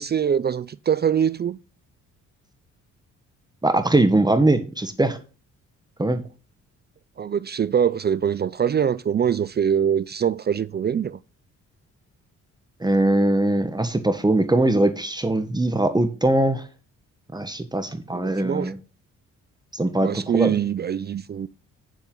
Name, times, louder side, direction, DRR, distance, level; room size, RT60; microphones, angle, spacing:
voice 1, 0.0-1.6 7.2-11.2 18.1-18.7 20.0-21.5, right 8 dB, 35° right, 0.5 m, -23 dB
voice 2, 3.6-5.2 6.0-6.2 12.8-16.6 17.3-18.8 19.7-20.5, right 2 dB, 15° right, 1.4 m, -21 dB
9.5 x 7.5 x 3.9 m
cardioid pair, 90°, 30 cm